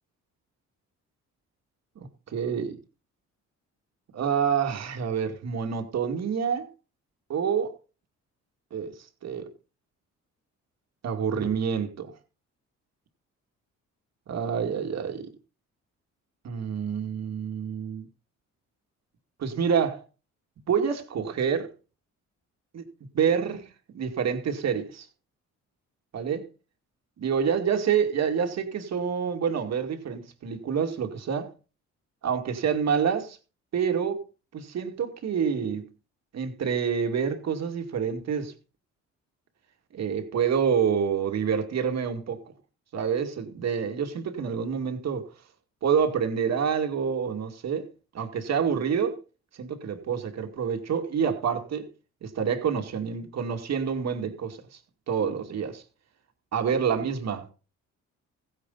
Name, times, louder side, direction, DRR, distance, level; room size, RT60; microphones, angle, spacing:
voice 1, 2.0-2.8 4.1-6.7 7.3-7.7 8.7-8.9 9.2-9.5 11.0-12.1 14.3-15.3 16.4-18.1 19.4-20.0 20.7-21.7 22.7-22.9 23.1-25.1 26.1-26.5 27.2-31.5 32.2-33.4 33.7-34.2 34.5-35.8 36.3-38.5 39.9-42.4 42.9-45.3 45.8-47.9 48.1-49.2 49.6-51.9 52.2-54.8 55.1-55.8 56.5-57.5, right 7 dB, 60° right, 2.4 m, -27 dB
15.5 x 10.0 x 4.1 m
cardioid pair, 90°, 30 cm